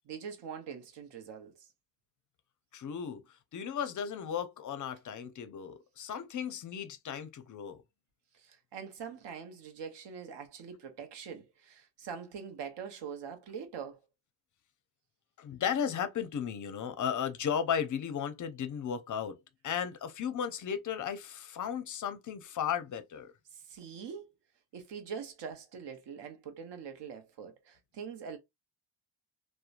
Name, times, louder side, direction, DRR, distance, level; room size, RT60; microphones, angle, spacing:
voice 1, 0.1-1.7 8.3-14.0 23.5-24.3 24.7-28.4, right 7 dB, 60° right, 0.8 m, -43 dB
voice 2, 2.7-3.2 3.5-7.8 15.4-19.4 19.6-23.3, left 8 dB, 40° left, 0.5 m, -35 dB
2.9 x 2.1 x 2.4 m
cardioid pair, 115°, 48 cm